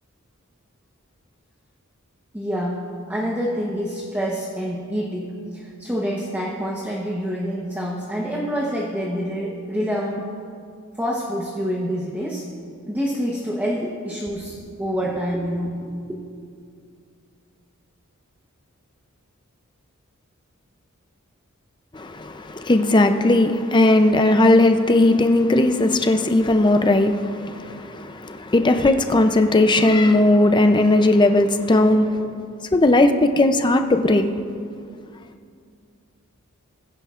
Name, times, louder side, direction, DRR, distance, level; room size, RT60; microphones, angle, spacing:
voice 1, 2.3-10.2 11.0-12.5 12.9-15.9, equal, 10° right, 1.0 m, -27 dB
voice 2, 21.9-32.2 32.7-34.2, left 2 dB, 20° left, 0.5 m, -17 dB
21.0 x 10.0 x 2.5 m
head